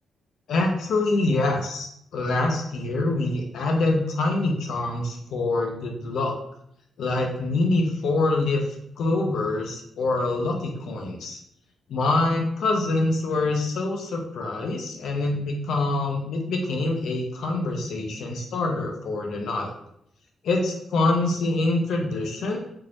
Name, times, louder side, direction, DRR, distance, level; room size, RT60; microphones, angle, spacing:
voice 1, 0.5-1.9 2.1-6.3 7.0-8.6 9.0-11.4 11.9-19.7 20.4-22.6, left 2 dB, 80° left, 1 dB, 0.7 m, -25 dB
3.6 x 2.5 x 3.0 m, 0.72 s
wide cardioid pair, 155°, 0 cm